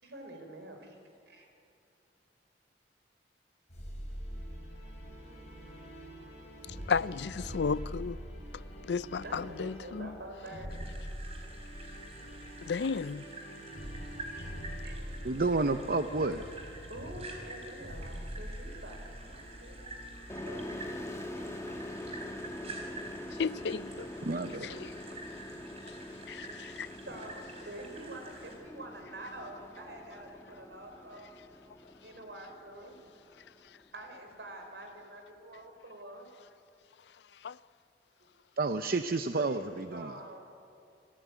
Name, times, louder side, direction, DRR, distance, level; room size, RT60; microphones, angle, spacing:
voice 1, 0.0-1.5 9.2-10.9 14.8-15.0 16.9-20.2 20.4-21.5 25.0-25.2 26.3-26.7 26.9-31.4 32.0-33.0 33.9-36.3 39.3-40.4, right 1 dB, 75° right, 4.3 m, -47 dB
sound 1, 3.7-20.5, equal, 40° left, 7.0 m, -44 dB
voice 2, 6.9-8.2 8.9-10.1 12.6-13.2 23.4-24.1 24.5-25.0 25.9-26.0 26.3-26.9 37.4-37.6, left 5 dB, 75° left, 0.5 m, -33 dB
sound 2, 10.7-28.6, right 2 dB, 35° right, 4.5 m, -48 dB
voice 3, 15.2-16.4 24.2-24.9 38.6-40.1, right 3 dB, 55° right, 0.7 m, -30 dB
sound 3, 20.3-33.7, left 1 dB, 15° left, 2.0 m, -44 dB
27.5 x 14.5 x 9.4 m
head